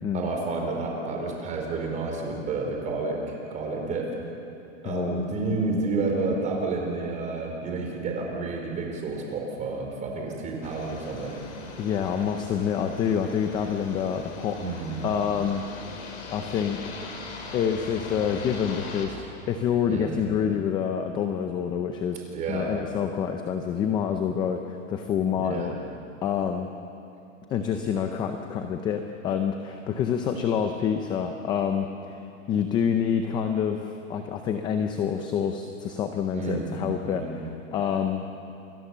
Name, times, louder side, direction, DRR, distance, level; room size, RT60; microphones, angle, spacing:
voice 1, 0.1-4.1 4.8-11.5 14.6-14.9 19.9-20.2 22.3-22.7 25.3-25.8 36.3-36.8 37.0-37.4, right 3 dB, 20° right, 1 dB, 4.5 m, -30 dB
voice 2, 4.8-5.3 11.8-15.6 16.3-17.0 17.5-25.7 26.2-26.7 27.5-32.2 32.5-38.2, left 8 dB, 10° left, 6 dB, 0.5 m, -27 dB
sound 1, 10.6-19.1, left 2 dB, 60° left, 5.3 m, -40 dB
28.5 x 23.0 x 7.4 m, 2.7 s
supercardioid pair, 160°, 39 cm